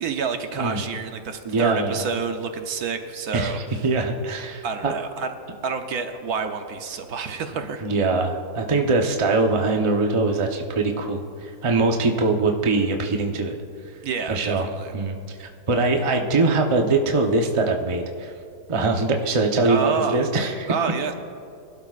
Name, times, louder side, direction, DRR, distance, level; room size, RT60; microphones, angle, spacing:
voice 1, 0.0-3.8 4.6-5.3 5.6-7.9 14.0-14.9 19.6-20.2 20.7-21.1, right 5 dB, 70° right, 6 dB, 1.3 m, -28 dB
voice 2, 0.6-0.9 1.4-2.0 3.3-4.9 7.8-13.6 14.3-14.7 14.9-18.3 18.7-20.7, right 3 dB, 25° right, 2 dB, 0.7 m, -22 dB
23.0 x 12.0 x 2.5 m, 2.4 s
omnidirectional pair, 1.7 m